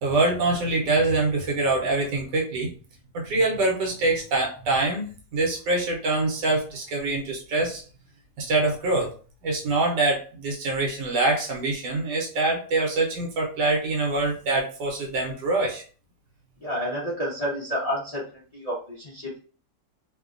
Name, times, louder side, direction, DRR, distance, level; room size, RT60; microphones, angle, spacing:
voice 1, 0.0-2.7 3.1-5.0 5.3-7.8 8.4-9.1 9.4-15.8, right 2 dB, 80° right, 0 dB, 1.3 m, -24 dB
voice 2, 16.6-19.4, equal, 75° left, -6 dB, 0.3 m, -30 dB
3.0 x 2.1 x 2.4 m, 0.40 s
omnidirectional pair, 1.8 m